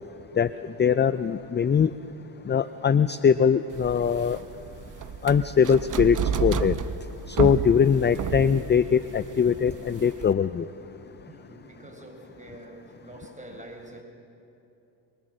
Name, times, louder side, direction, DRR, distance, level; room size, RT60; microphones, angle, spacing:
voice 1, 0.8-1.9 2.5-4.4 5.2-6.7 7.3-10.6, left 7 dB, 20° left, 14 dB, 0.5 m, -21 dB
sound 1, 3.7-10.3, right 7 dB, 40° right, 1.0 m, -31 dB
voice 2, 11.3-14.0, right 1 dB, 15° right, 2 dB, 5.0 m, -45 dB
24.5 x 22.5 x 6.3 m, 2.8 s
supercardioid pair, 65°, 50 cm